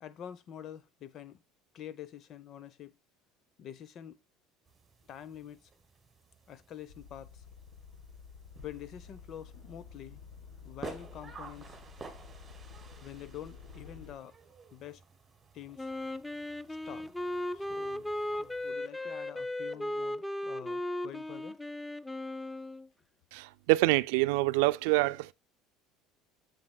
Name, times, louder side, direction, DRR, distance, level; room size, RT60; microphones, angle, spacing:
voice 1, 0.0-1.4 1.7-2.9 3.6-4.2 5.1-5.7 6.5-7.4 8.6-10.2 10.6-11.8 13.0-14.3 14.7-15.0 15.5-15.9 16.8-17.1 17.5-21.6, left 10 dB, 45° left, 0.8 m, -47 dB
sound 1, 4.6-18.7, right 4 dB, 20° right, 1.5 m, -53 dB
sound 2, 6.9-14.1, left 5 dB, 85° left, 3.5 m, -51 dB
Wind instrument woodwind instrument, 15.8-22.9, left 1 dB, 5° left, 0.4 m, -36 dB
voice 2, 23.3-25.3, right 20 dB, 85° right, 0.4 m, -26 dB
7.5 x 6.8 x 2.3 m
cardioid pair, 135°, 0 cm